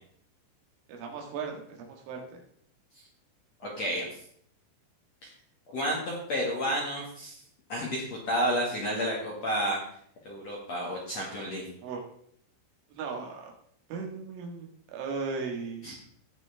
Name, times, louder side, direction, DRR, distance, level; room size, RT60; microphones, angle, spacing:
voice 1, 0.9-2.2 11.8-12.0 12.9-13.5 13.9-14.7 14.9-15.9, right 5 dB, 75° right, 1 dB, 4.3 m, -36 dB
voice 2, 3.6-4.2 5.2-5.3 5.7-7.4 7.7-9.8 10.2-11.6 15.8-15.9, equal, 50° left, -4 dB, 2.1 m, -31 dB
18.0 x 6.2 x 3.5 m, 0.63 s
omnidirectional pair, 5.6 m